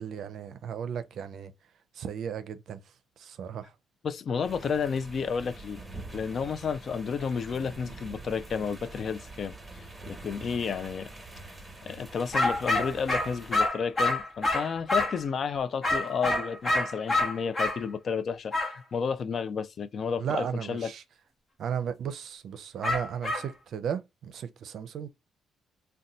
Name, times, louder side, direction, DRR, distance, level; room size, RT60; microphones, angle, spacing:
voice 1, 0.0-1.5 2.0-2.8 3.2-3.7 20.2-21.0 21.6-25.1, right 8 dB, 65° right, 0.5 m, -35 dB
voice 2, 4.0-5.8 6.1-11.1 11.8-20.9, left 6 dB, 50° left, 0.3 m, -31 dB
sound 1, 4.4-13.7, right 2 dB, 15° right, 1.1 m, -45 dB
sound 2, 12.3-15.2 15.8-17.8 18.5-18.7 22.8-23.5, left 2 dB, 35° left, 1.0 m, -27 dB
2.6 x 2.2 x 4.0 m
cardioid pair, 90°, 0 cm